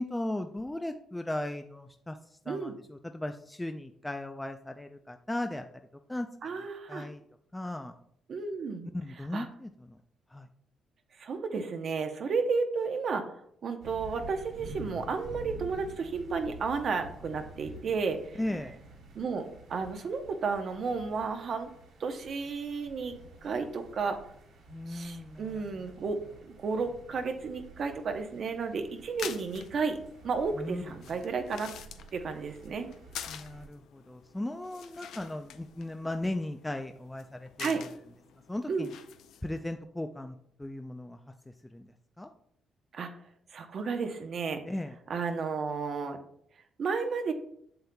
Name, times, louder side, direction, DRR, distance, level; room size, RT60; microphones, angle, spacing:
voice 1, 0.0-2.2 2.5-5.7 6.1-6.3 6.5-7.2 7.5-7.9 8.9-10.0 10.3-10.5 18.4-18.8 24.7-25.7 30.6-30.8 33.3-37.9 38.5-38.9 39.4-41.2 41.7-41.9 42.2-42.3 44.7-45.0, left 1 dB, 10° left, 6 dB, 0.4 m, -37 dB
voice 2, 6.4-7.1 8.3-8.9 9.3-9.5 11.2-13.2 13.6-18.6 19.1-21.7 22.0-23.2 23.4-24.2 24.9-26.2 26.4-30.0 30.2-31.7 32.1-32.9 37.6-37.8 38.7-38.9 42.9-43.1 43.5-44.6 45.1-46.2 46.8-47.3, right 5 dB, 55° right, 6 dB, 0.8 m, -32 dB
sound 1, 13.8-33.7, right 2 dB, 80° right, 2.2 m, -50 dB
sound 2, 29.0-39.7, left 9 dB, 80° left, 0.5 m, -47 dB
7.8 x 6.9 x 2.2 m, 0.69 s
cardioid pair, 90°, 0 cm